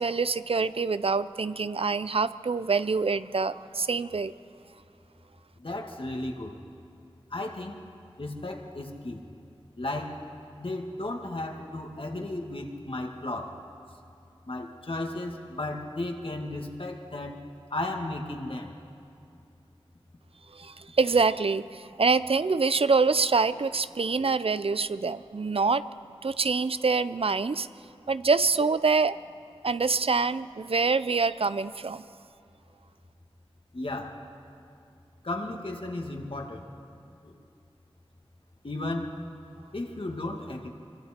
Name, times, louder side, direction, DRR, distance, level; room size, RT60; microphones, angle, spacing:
voice 1, 0.0-4.3 20.6-25.8 26.2-27.7 28.1-29.2 29.6-32.0, right 4 dB, 70° right, 14 dB, 0.5 m, -25 dB
voice 2, 5.6-6.6 7.3-7.8 8.2-9.2 9.8-10.2 10.6-13.6 14.5-17.4 17.7-18.7 33.7-34.2 35.2-36.7 37.2-37.4 38.6-39.2 39.7-40.7, left 2 dB, 60° left, 2 dB, 2.0 m, -34 dB
25.0 x 24.5 x 4.4 m, 2.5 s
wide cardioid pair, 45°, 10 cm